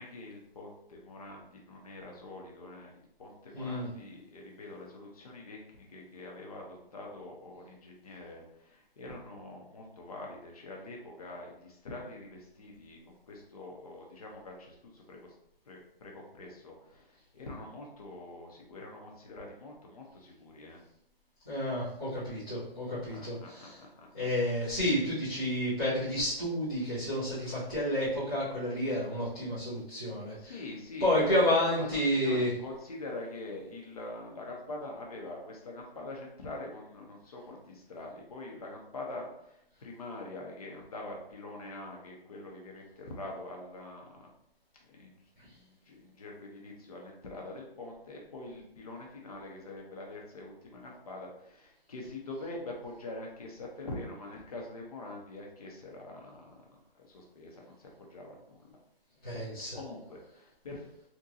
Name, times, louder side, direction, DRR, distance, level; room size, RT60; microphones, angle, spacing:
voice 1, 0.0-15.3 15.7-20.8 23.1-24.3 30.4-44.3 44.8-45.2 45.5-56.7 57.0-58.8 59.7-61.1, left 2 dB, 40° left, -1 dB, 0.7 m, -44 dB
voice 2, 3.5-3.9 21.4-23.8 24.1-30.6 31.0-32.5 59.2-59.8, left 1 dB, 10° left, -17 dB, 0.4 m, -30 dB
3.9 x 2.2 x 2.7 m, 0.76 s
hypercardioid pair, 160°, 30 cm